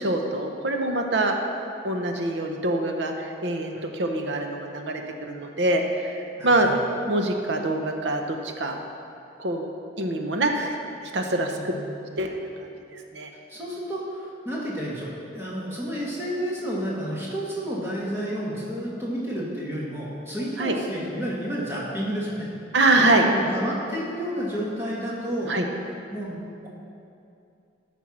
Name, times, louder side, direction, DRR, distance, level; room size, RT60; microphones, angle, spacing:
voice 1, 0.0-1.3 1.8-6.2 6.4-6.7 7.1-8.8 9.4-9.7 10.0-10.7 11.0-11.7 12.2-12.4 13.1-13.3 20.6-20.8 22.7-23.3 25.5-25.7, right 2 dB, 70° right, 4 dB, 0.9 m, -24 dB
voice 2, 6.4-6.7 11.6-11.9 13.5-22.5 22.9-25.5 26.1-26.7, equal, 15° right, -6 dB, 1.7 m, -31 dB
12.0 x 4.5 x 6.0 m, 2.6 s
head